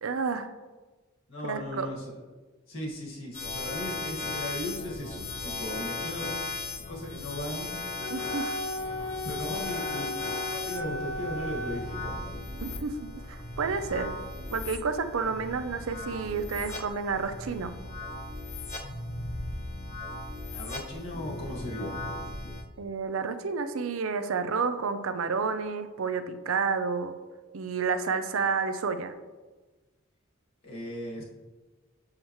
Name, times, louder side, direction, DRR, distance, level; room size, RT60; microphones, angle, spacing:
voice 1, 0.0-0.5 1.4-1.9 8.1-8.5 12.6-14.2 14.5-17.7 22.8-27.1 27.5-29.1, right 5 dB, 70° right, 9 dB, 0.5 m, -30 dB
voice 2, 1.3-2.2 2.7-6.3 6.9-7.9 9.2-12.2 20.5-22.0 30.6-31.2, left 1 dB, 65° left, -3 dB, 1.9 m, -37 dB
sound 1, 3.3-22.6, left 3 dB, 35° left, 0.8 m, -37 dB
Wind instrument woodwind instrument, 8.0-11.9, left 1 dB, 15° left, 1.1 m, -35 dB
7.2 x 6.4 x 3.1 m, 1.2 s
head